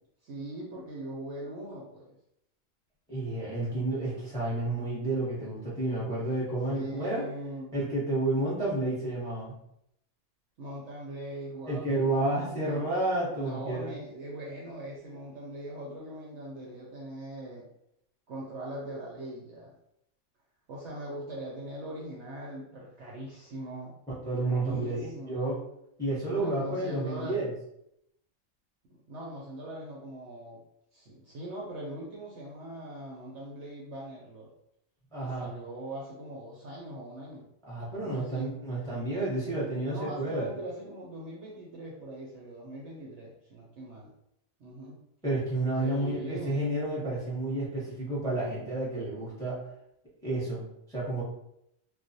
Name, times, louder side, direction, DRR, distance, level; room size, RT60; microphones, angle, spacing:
voice 1, 0.2-2.1 6.7-7.7 10.6-12.9 13.4-17.7 18.3-19.7 20.7-23.9 24.4-25.4 26.3-27.4 29.1-30.6 30.9-34.5 35.2-37.5 37.9-38.5 39.8-44.1 44.6-45.0 45.8-46.6, right 1 dB, 65° right, -4 dB, 0.7 m, -41 dB
voice 2, 3.1-7.2 7.7-9.5 11.7-14.0 24.2-25.6 26.0-27.5 35.1-35.5 37.7-40.5 45.2-49.6 50.2-51.2, right 2 dB, 5° left, -7 dB, 0.6 m, -30 dB
2.4 x 2.0 x 2.6 m, 0.78 s
omnidirectional pair, 1.5 m